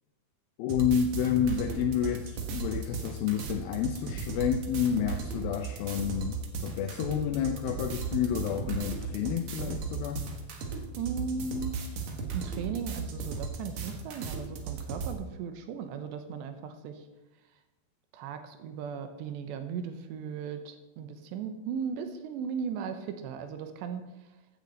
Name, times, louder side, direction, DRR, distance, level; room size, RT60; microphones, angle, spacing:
voice 1, 0.6-10.3, left 9 dB, 85° left, 6 dB, 2.1 m, -30 dB
sound 1, 0.7-15.1, right 5 dB, 60° right, 1.9 m, -36 dB
voice 2, 11.0-12.0 12.3-17.1 18.1-24.0, right 6 dB, 80° right, 7 dB, 3.1 m, -37 dB
15.0 x 9.9 x 4.1 m, 1.1 s
omnidirectional pair, 5.0 m